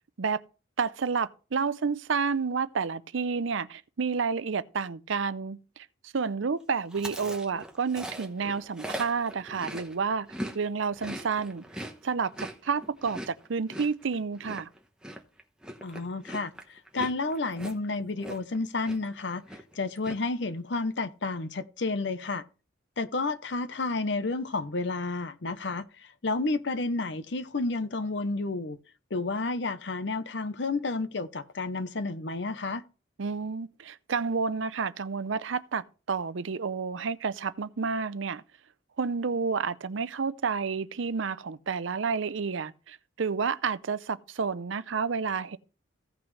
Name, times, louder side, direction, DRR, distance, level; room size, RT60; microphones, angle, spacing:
voice 1, 0.8-10.3 10.5-11.6 12.0-14.7 33.2-38.4 39.0-45.6, right 5 dB, 75° right, 0.6 m, -30 dB
Chewing mastication, 6.9-10.6 10.8-18.6 18.8-19.2 19.4-20.2, right 1 dB, 5° right, 1.0 m, -40 dB
voice 2, 15.8-22.4 23.0-28.8 29.1-32.8, left 3 dB, 60° left, 0.8 m, -31 dB
16.0 x 6.1 x 3.2 m
head